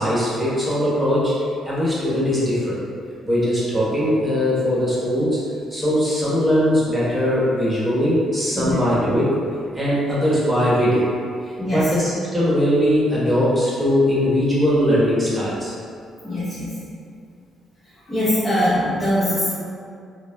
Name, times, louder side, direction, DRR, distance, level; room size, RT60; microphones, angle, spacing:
voice 1, 0.0-1.3 1.6-2.8 3.2-5.4 5.7-9.4 9.7-11.1 11.4-15.7, equal, 10° right, -8 dB, 1.1 m, -20 dB
voice 2, 11.6-11.9 16.2-16.8 18.1-19.5, left 1 dB, 30° left, -12 dB, 1.0 m, -22 dB
4.1 x 2.0 x 2.2 m, 2.3 s
cardioid pair, 80°, 0 cm